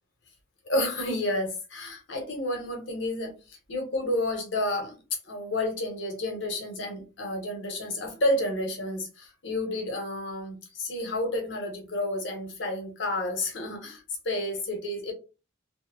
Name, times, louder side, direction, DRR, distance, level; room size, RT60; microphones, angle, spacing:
voice 1, 0.6-5.0 5.2-15.1, left 1 dB, 70° left, 0.9 m, -30 dB
2.8 x 2.0 x 2.3 m
head